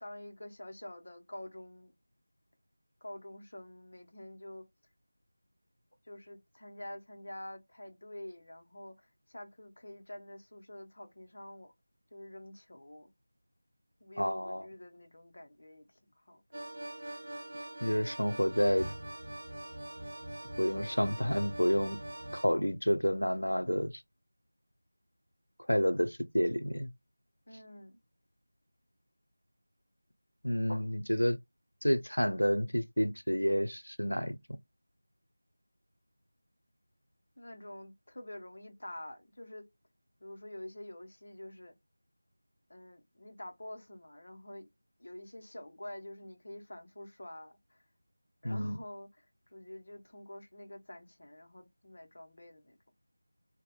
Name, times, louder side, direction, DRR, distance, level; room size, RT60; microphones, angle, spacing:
voice 1, 0.0-1.9 3.0-4.6 6.1-11.7 12.1-13.1 14.0-15.9 16.2-16.4 27.5-28.0 37.4-39.7 40.2-41.7 42.7-44.7 45.0-47.8 48.4-49.3 49.5-52.8, left 1 dB, 45° left, 0.7 m, -47 dB
voice 2, 14.2-14.7 17.8-18.9 20.6-22.0 22.3-24.0 25.7-26.9 30.4-31.4 31.8-34.4 48.4-48.8, equal, 80° left, 0.5 m, -29 dB
sound 1, 16.5-22.4, right 1 dB, 50° right, 0.7 m, -43 dB
2.7 x 2.1 x 2.2 m
figure-of-eight pair, 170°, 0 cm